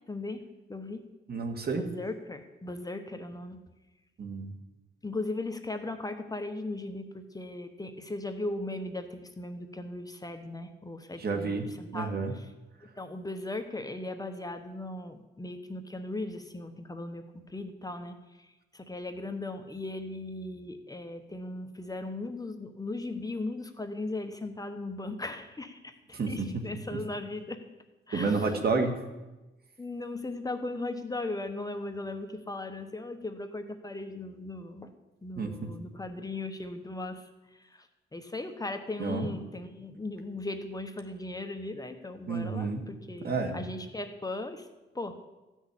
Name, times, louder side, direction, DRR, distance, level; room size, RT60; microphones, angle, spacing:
voice 1, 0.1-0.4 0.7-1.0 1.7-3.6 5.0-12.5 13.0-27.6 28.1-28.6 29.8-34.9 35.2-37.9 38.1-44.7 44.9-45.2, left 2 dB, 20° left, 6 dB, 1.1 m, -38 dB
voice 2, 1.3-1.8 4.2-4.5 11.2-12.3 26.1-26.6 28.1-28.9 35.4-35.7 39.0-39.3 42.3-42.8 43.2-43.6, right 4 dB, 50° right, 5 dB, 2.1 m, -30 dB
14.5 x 6.4 x 9.9 m, 1.1 s
cardioid pair, 110°, 21 cm